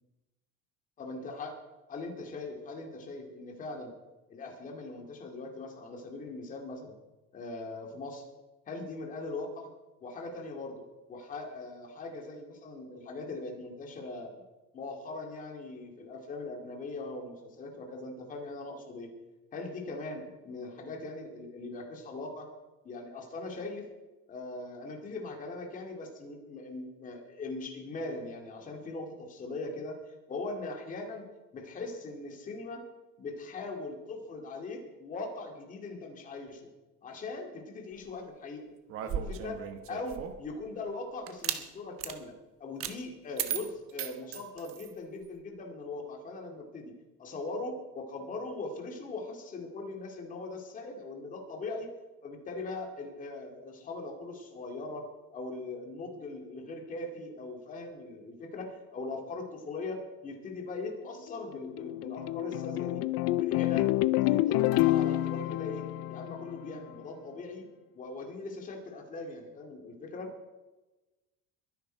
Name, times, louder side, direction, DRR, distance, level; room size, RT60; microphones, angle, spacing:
voice 1, 1.0-1.5 1.9-3.9 4.3-6.9 7.3-8.3 8.7-9.7 10.0-10.8 11.1-14.3 14.7-19.2 19.5-22.5 22.8-23.9 24.3-31.2 31.5-32.8 33.2-36.7 37.0-38.7 39.0-39.6 39.9-42.3 42.6-46.9 47.2-51.9 52.2-67.7 67.9-70.3, left 3 dB, 25° left, 2 dB, 2.3 m, -40 dB
sound 1, 38.9-40.5 41.3-41.6 42.0-42.2 42.8-43.0 43.4-44.9, right 10 dB, 40° right, 1.2 m, -36 dB
sound 2, 61.3-66.9, left 16 dB, 45° left, 0.4 m, -28 dB
22.5 x 10.5 x 4.5 m, 1.1 s
cardioid pair, 175°, 33 cm